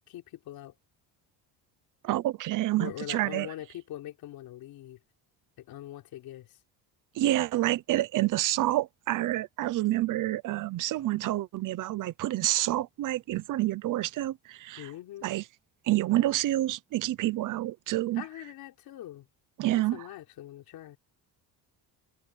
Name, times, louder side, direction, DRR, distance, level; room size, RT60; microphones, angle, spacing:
voice 1, 0.1-0.8 2.8-5.0 5.6-6.6 14.8-15.3 18.1-19.3 19.7-21.0, left 13 dB, 65° left, 3.8 m, -43 dB
voice 2, 2.0-3.5 7.2-14.9 15.2-15.4 15.9-18.2 19.6-20.0, right 15 dB, 50° right, 0.9 m, -28 dB
cardioid pair, 165°, 39 cm